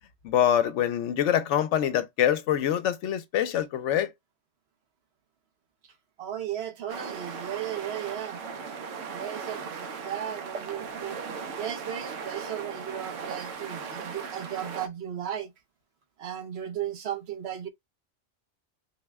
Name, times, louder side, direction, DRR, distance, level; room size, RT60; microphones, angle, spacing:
voice 1, 0.2-4.1, left 10 dB, 80° left, 0.9 m, -25 dB
voice 2, 6.2-8.4 9.1-11.2 11.6-15.5 16.2-17.7, right 10 dB, 65° right, 0.9 m, -35 dB
sound 1, 6.9-14.9, right 5 dB, 90° right, 1.0 m, -38 dB
4.0 x 2.1 x 3.3 m
omnidirectional pair, 1.2 m